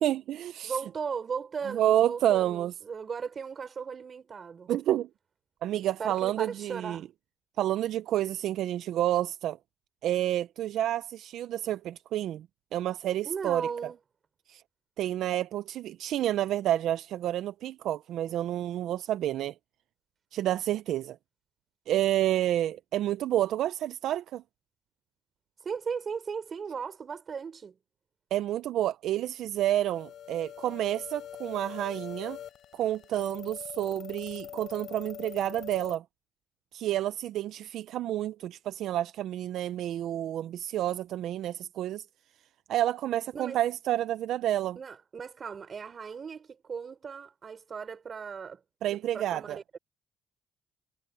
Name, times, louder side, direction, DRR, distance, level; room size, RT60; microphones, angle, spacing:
voice 1, 0.0-0.8 1.7-2.7 4.7-5.1 5.6-7.0 7.6-9.6 10.0-12.5 12.7-13.7 14.5-14.6 15.0-19.5 20.3-21.2 21.9-24.4 28.3-32.4 32.7-36.0 36.7-42.1 42.7-44.8 48.8-49.6, right 12 dB, 80° right, 0.5 m, -29 dB
voice 2, 0.6-4.7 6.0-7.1 13.2-14.0 25.6-27.8 43.3-43.6 44.7-48.6 48.9-49.8, right 6 dB, 45° right, 5.0 m, -37 dB
sound 1, 29.8-36.0, left 10 dB, 70° left, 5.7 m, -44 dB
cardioid pair, 90°, 0 cm